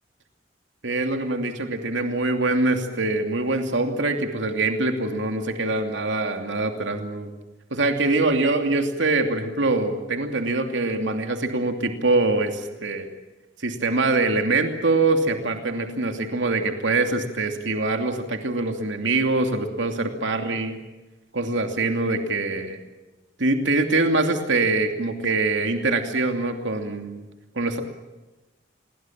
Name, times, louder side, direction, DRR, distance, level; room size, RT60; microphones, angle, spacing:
voice 1, 0.8-7.3 7.7-13.1 13.6-20.8 21.3-22.8 23.4-27.2 27.5-27.8, right 2 dB, 85° right, 5 dB, 2.7 m, -24 dB
28.0 x 22.0 x 7.4 m, 1.1 s
head